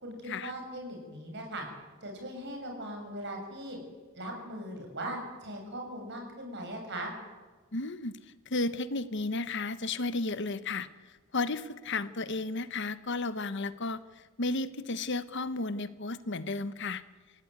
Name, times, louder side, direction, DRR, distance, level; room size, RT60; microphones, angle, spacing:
voice 1, 0.0-1.7 2.0-3.8 4.1-7.1, right 1 dB, 55° right, 2 dB, 6.6 m, -39 dB
voice 2, 7.7-17.0, left 3 dB, 60° left, 13 dB, 1.2 m, -33 dB
28.5 x 16.5 x 9.6 m, 1.3 s
head